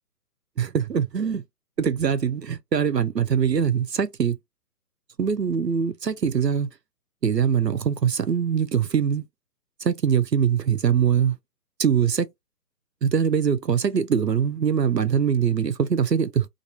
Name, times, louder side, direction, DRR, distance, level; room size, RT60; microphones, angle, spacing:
voice 1, 0.6-1.4 1.8-4.4 5.2-6.7 7.2-9.2 9.8-11.4 11.8-12.3 13.0-16.5, right 7 dB, 85° right, 0.8 m, -22 dB
2.7 x 2.6 x 4.2 m
figure-of-eight pair, 135°, 49 cm